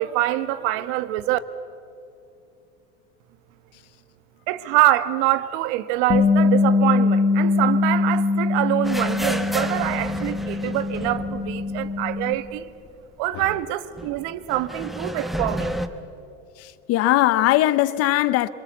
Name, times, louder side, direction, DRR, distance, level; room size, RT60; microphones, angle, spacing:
voice 1, 0.0-1.4 4.5-12.7 13.2-15.7, right 14 dB, 55° right, 1.4 m, -25 dB
Bass guitar, 6.1-12.3, left 3 dB, 20° left, 2.0 m, -22 dB
sound 1, 8.8-12.6 12.9-13.0 14.0-15.9, equal, ahead, 0.9 m, -31 dB
voice 2, 16.6-18.5, left 15 dB, 40° left, 0.8 m, -20 dB
27.5 x 26.0 x 8.3 m
supercardioid pair, 145°, 39 cm